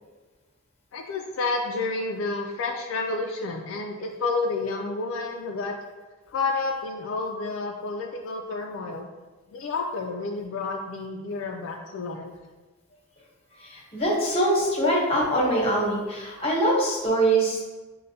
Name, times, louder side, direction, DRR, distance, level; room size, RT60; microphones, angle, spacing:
voice 1, 0.9-5.8 6.3-9.1 9.5-12.3, left 3 dB, 70° left, 2 dB, 0.3 m, -30 dB
voice 2, 13.5-17.6, right 1 dB, 30° left, -4 dB, 1.0 m, -23 dB
6.3 x 2.1 x 2.7 m, 1.2 s
head